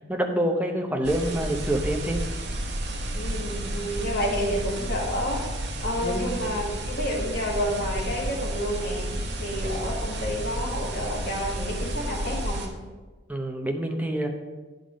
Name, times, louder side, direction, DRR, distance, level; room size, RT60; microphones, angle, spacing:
voice 1, 0.1-2.2 6.0-6.5 13.3-14.3, right 1 dB, 10° right, 3 dB, 0.7 m, -27 dB
sound 1, 1.0-12.7, right 1 dB, 60° right, 1.1 m, -31 dB
voice 2, 3.0-5.4 5.8-12.7, equal, 50° left, -2 dB, 1.4 m, -30 dB
9.9 x 3.9 x 5.0 m, 1.3 s
head